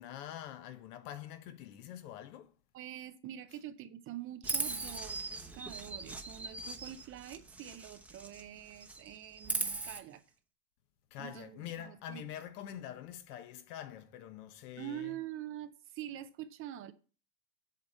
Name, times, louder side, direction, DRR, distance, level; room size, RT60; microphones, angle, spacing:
voice 1, 0.0-2.5 11.1-15.2, left 11 dB, 65° left, 1.3 m, -45 dB
voice 2, 2.7-10.2 11.2-12.3 14.8-16.9, right 12 dB, 30° right, 0.5 m, -45 dB
Chirp tweet, 4.4-8.5 8.8-10.0, right 3 dB, 5° right, 0.8 m, -39 dB
8.0 x 6.9 x 4.1 m
supercardioid pair, 135°, 49 cm